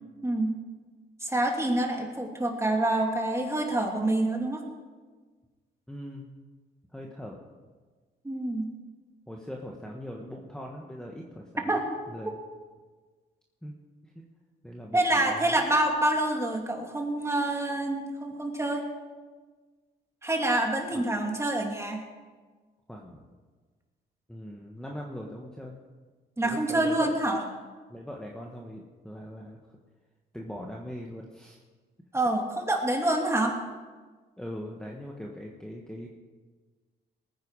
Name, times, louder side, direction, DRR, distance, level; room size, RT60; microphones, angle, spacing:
voice 1, 0.2-0.6 1.2-4.7 8.2-8.7 11.7-11.9 14.9-18.9 20.2-22.1 26.4-27.4 32.1-33.6, right 1 dB, 15° right, 2 dB, 2.7 m, -27 dB
voice 2, 5.9-6.3 6.9-7.4 9.3-11.8 12.1-12.4 13.6-13.7 14.1-14.2 14.6-15.6 20.9-21.0 22.9-23.2 24.3-25.8 26.4-27.1 27.9-29.6 30.3-31.6 34.4-36.1, equal, 5° left, -1 dB, 1.6 m, -41 dB
20.0 x 9.5 x 4.9 m, 1.4 s
cardioid pair, 90°, 20 cm